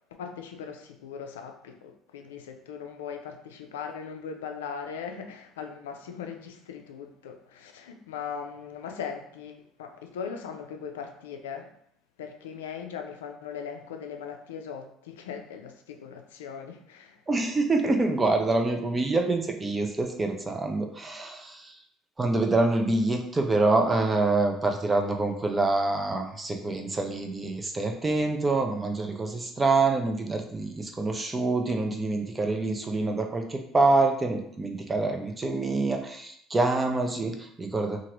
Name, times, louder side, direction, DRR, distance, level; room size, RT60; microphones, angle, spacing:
voice 1, 0.2-11.7 12.2-17.2, left 6 dB, 80° left, 5 dB, 0.4 m, -39 dB
voice 2, 17.3-21.7 22.2-38.0, right 3 dB, 25° right, 3 dB, 0.5 m, -26 dB
2.8 x 2.5 x 2.9 m, 0.69 s
hypercardioid pair, 65°, 0 cm